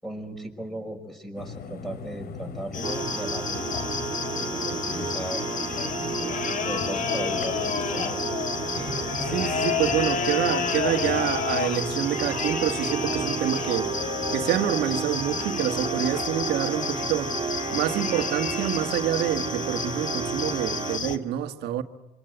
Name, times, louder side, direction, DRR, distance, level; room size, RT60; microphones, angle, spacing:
voice 1, 0.0-3.7 4.3-5.4 5.9-8.3, right 1 dB, ahead, 5.5 m, -37 dB
sound 1, 1.3-21.2, left 4 dB, 65° left, 2.6 m, -40 dB
sound 2, 2.7-21.2, left 7 dB, 50° left, 1.5 m, -31 dB
sound 3, 2.8-21.0, right 6 dB, 30° right, 2.5 m, -32 dB
voice 2, 9.3-13.9 14.3-17.4 17.7-21.8, right 11 dB, 80° right, 1.5 m, -27 dB
26.5 x 25.5 x 8.0 m
cardioid pair, 110°, 17 cm